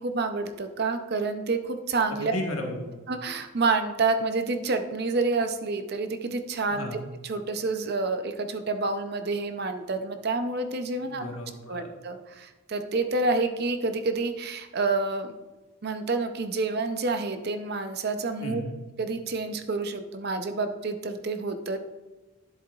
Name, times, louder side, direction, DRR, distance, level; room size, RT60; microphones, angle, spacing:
voice 1, 0.0-2.4 3.1-6.9 7.2-11.3 11.7-15.3 15.8-18.6 19.0-21.8, right 3 dB, 45° right, 8 dB, 0.5 m, -28 dB
voice 2, 2.1-3.0 6.7-7.0 11.0-11.9 18.4-18.7, left 1 dB, 75° left, 1 dB, 1.4 m, -35 dB
10.5 x 7.6 x 2.4 m, 1.2 s
head